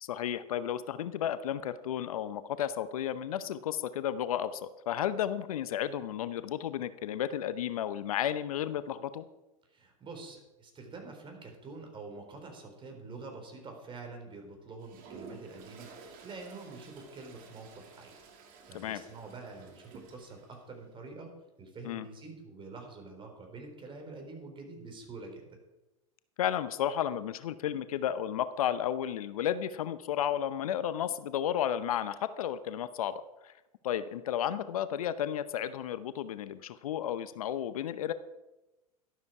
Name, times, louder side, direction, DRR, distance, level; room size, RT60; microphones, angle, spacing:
voice 1, 0.0-9.3 18.7-19.0 21.8-22.1 26.4-33.5 33.8-38.1, left 10 dB, 70° left, 14 dB, 0.7 m, -33 dB
voice 2, 9.7-18.1 18.7-25.6, right 3 dB, 25° right, 3 dB, 4.1 m, -46 dB
Toilet flush, 14.8-20.6, right 5 dB, 50° right, 2.8 m, -52 dB
12.5 x 12.0 x 4.8 m, 1.0 s
hypercardioid pair, 90°, 19 cm